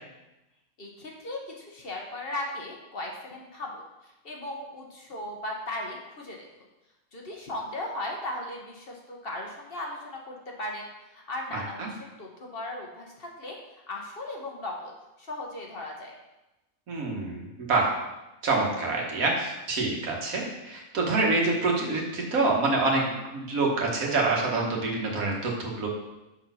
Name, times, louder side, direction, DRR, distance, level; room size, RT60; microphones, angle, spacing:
voice 1, 0.8-3.8 4.2-6.5 7.1-10.9 11.1-13.6 13.9-14.9 15.2-16.1, left 1 dB, 45° left, 0 dB, 1.1 m, -37 dB
voice 2, 11.5-11.9 16.9-17.9 18.4-25.9, right 3 dB, 80° right, -1 dB, 1.8 m, -26 dB
6.7 x 4.2 x 5.6 m, 1.0 s
omnidirectional pair, 1.5 m